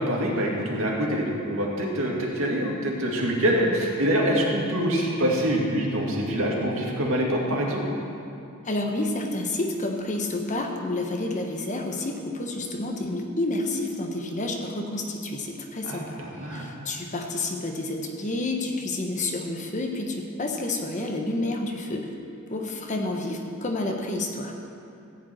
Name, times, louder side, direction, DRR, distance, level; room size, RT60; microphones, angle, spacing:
voice 1, 0.0-7.8 15.8-16.9, equal, 65° right, -2 dB, 2.1 m, -25 dB
voice 2, 8.6-16.2 16.5-22.1 22.5-24.5, left 2 dB, 35° left, 2 dB, 1.1 m, -29 dB
14.5 x 5.3 x 8.8 m, 2.7 s
head